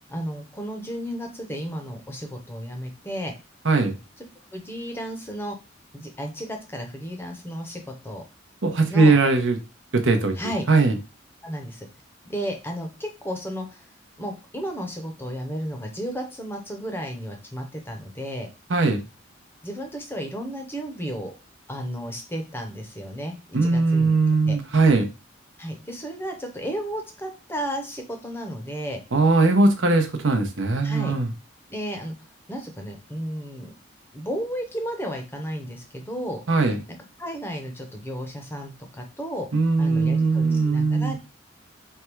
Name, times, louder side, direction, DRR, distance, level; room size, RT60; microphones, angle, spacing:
voice 1, 0.1-3.3 4.2-4.3 4.5-5.5 5.9-8.2 8.9-9.2 10.3-10.6 11.4-11.9 12.2-13.9 14.2-18.5 19.6-21.3 21.7-24.2 24.4-24.6 25.6-29.0 30.8-31.1 31.7-32.1 32.5-33.7 34.1-36.4 36.9-39.5 39.8-41.2, equal, 10° left, 0.6 m, -33 dB
voice 2, 8.6-9.6 9.9-10.3 10.7-10.9 18.7-19.0 23.5-25.1 29.1-31.3 36.5-36.8 39.5-41.1, right 3 dB, 75° right, 0.8 m, -20 dB
3.4 x 2.3 x 4.4 m
head